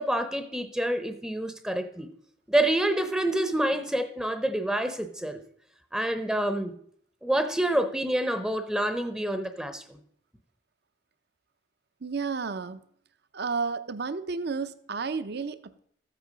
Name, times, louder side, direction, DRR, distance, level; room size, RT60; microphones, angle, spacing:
voice 1, 0.0-2.1 2.5-5.4 5.9-6.8 7.2-10.0, right 1 dB, 5° right, 0.7 m, -27 dB
voice 2, 12.0-12.8 13.3-15.8, right 4 dB, 55° right, 0.7 m, -32 dB
13.5 x 8.3 x 5.1 m
head